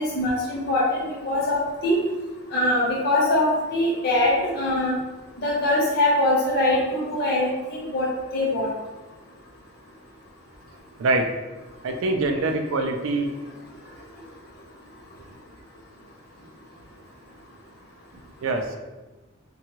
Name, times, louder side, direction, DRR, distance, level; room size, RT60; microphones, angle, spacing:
voice 1, 0.0-2.0 2.5-5.0 5.4-8.7, left 1 dB, 50° left, -5 dB, 0.5 m, -23 dB
voice 2, 11.0-11.3 11.8-13.3 18.4-18.8, right 2 dB, 70° right, 5 dB, 0.4 m, -24 dB
2.7 x 2.2 x 2.9 m, 1.1 s
head